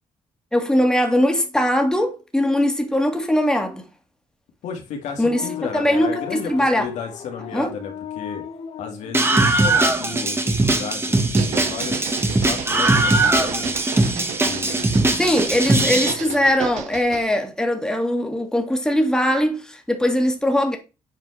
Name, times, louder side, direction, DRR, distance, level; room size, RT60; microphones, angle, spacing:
voice 1, 0.5-3.8 5.2-5.4 5.7-6.9 7.5-7.7 15.2-20.8, left 1 dB, 5° left, 2.2 m, -20 dB
voice 2, 4.6-8.4 8.8-12.0 12.2-13.8 14.4-16.4, left 6 dB, 80° left, 2.4 m, -34 dB
sound 1, 5.2-9.5, left 8 dB, 60° left, 1.4 m, -36 dB
Screaming, 9.1-16.1, right 2 dB, 20° right, 1.6 m, -20 dB
sound 2, 11.2-17.3, right 9 dB, 85° right, 1.0 m, -33 dB
8.0 x 4.6 x 4.2 m
cardioid pair, 85°, 12 cm